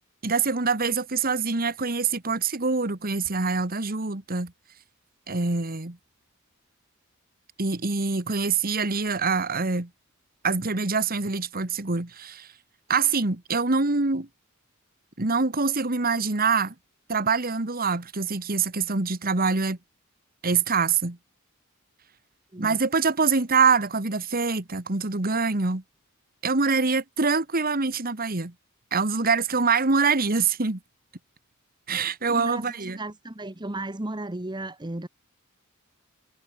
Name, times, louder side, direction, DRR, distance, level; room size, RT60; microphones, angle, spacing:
voice 1, 0.2-4.5 5.3-6.0 7.6-9.9 10.4-12.5 12.9-14.3 15.2-16.7 17.1-19.8 20.4-21.2 22.6-25.8 26.4-28.5 28.9-30.8 31.9-33.0, right 4 dB, 45° right, 1.7 m, -25 dB
voice 2, 32.3-35.1, right 2 dB, 20° right, 1.2 m, -35 dB
head